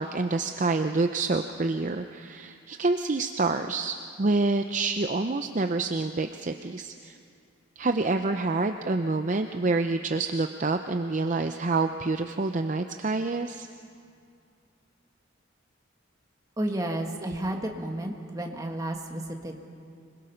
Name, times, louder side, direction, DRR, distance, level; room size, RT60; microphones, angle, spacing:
voice 1, 0.0-7.2 7.8-13.7, right 3 dB, 35° right, 7 dB, 0.5 m, -27 dB
voice 2, 16.6-19.6, right 1 dB, 15° right, 2 dB, 1.5 m, -32 dB
26.0 x 21.0 x 5.8 m, 2.3 s
head